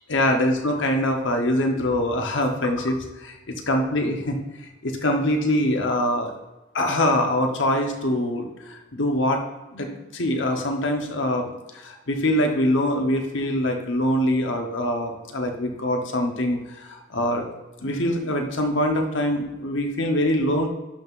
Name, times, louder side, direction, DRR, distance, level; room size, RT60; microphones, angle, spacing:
voice 1, 0.1-3.4 3.7-4.4 4.8-6.3 6.7-9.4 9.7-11.5 11.7-17.5 17.8-20.7, left 1 dB, 65° left, 3 dB, 1.1 m, -24 dB
11.5 x 5.7 x 2.6 m, 1.1 s
head